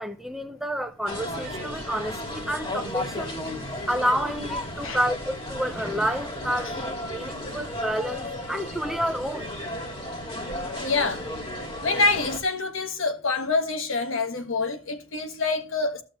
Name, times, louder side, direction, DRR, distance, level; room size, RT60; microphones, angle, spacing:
voice 1, 0.0-3.4 3.9-9.5, equal, ahead, 0.5 m, -29 dB
sound 1, 1.1-12.4, left 1 dB, 25° left, 2.2 m, -34 dB
voice 2, 3.5-3.9 4.8-5.0 10.8-11.2 11.8-16.0, left 3 dB, 75° left, 1.4 m, -26 dB
15.0 x 6.4 x 3.0 m
head